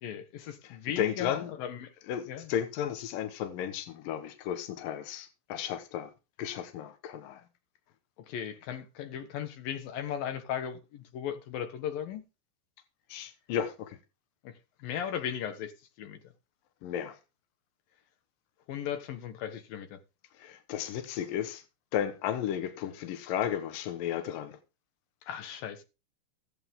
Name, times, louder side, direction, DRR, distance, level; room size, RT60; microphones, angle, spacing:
voice 1, 0.0-1.9 2.3-2.5 8.3-12.2 14.4-14.5 14.8-15.7 16.0-16.2 18.7-20.0 25.2-25.8, left 9 dB, 70° left, 2.3 m, -37 dB
voice 2, 0.6-1.5 2.1-6.1 6.4-7.4 13.1-14.0 16.8-17.2 20.4-21.6 21.9-24.6, left 9 dB, 85° left, 1.9 m, -34 dB
17.5 x 8.3 x 3.7 m
omnidirectional pair, 5.9 m